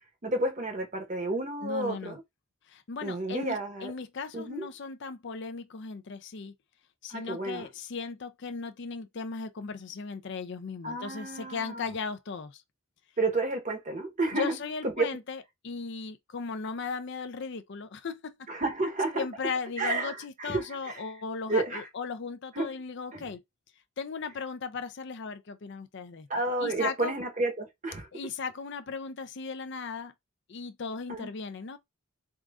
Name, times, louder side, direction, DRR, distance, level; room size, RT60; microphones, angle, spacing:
voice 1, 0.2-2.2 3.0-3.9 4.3-4.7 7.1-7.7 10.8-11.9 13.2-14.6 15.0-15.1 18.5-19.2 19.8-21.0 21.5-21.8 22.5-22.7 23.1-23.2 26.3-28.1 31.1-31.3, right 2 dB, 35° right, 1.0 m, -31 dB
voice 2, 1.6-2.2 2.7-6.5 7.0-12.6 14.3-18.5 19.1-23.4 24.0-26.3 26.6-27.1 28.1-30.1 30.5-31.8, left 5 dB, 55° left, 0.5 m, -37 dB
3.7 x 3.6 x 2.4 m
head